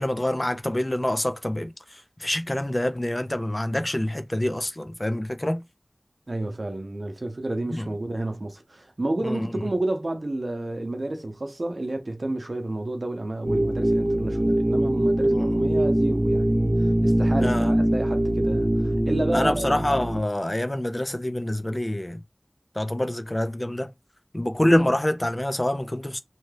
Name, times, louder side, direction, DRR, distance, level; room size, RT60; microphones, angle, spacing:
voice 1, 0.0-5.6 7.7-7.9 9.2-9.5 15.3-15.6 17.4-17.7 19.3-22.2 22.7-23.9 24.3-26.2, left 1 dB, 40° left, 0.5 m, -26 dB
voice 2, 6.3-19.7, right 2 dB, 90° right, 0.6 m, -30 dB
sound 1, 13.4-20.2, right 1 dB, 45° right, 0.5 m, -22 dB
2.7 x 2.2 x 3.2 m
wide cardioid pair, 40°, 0 cm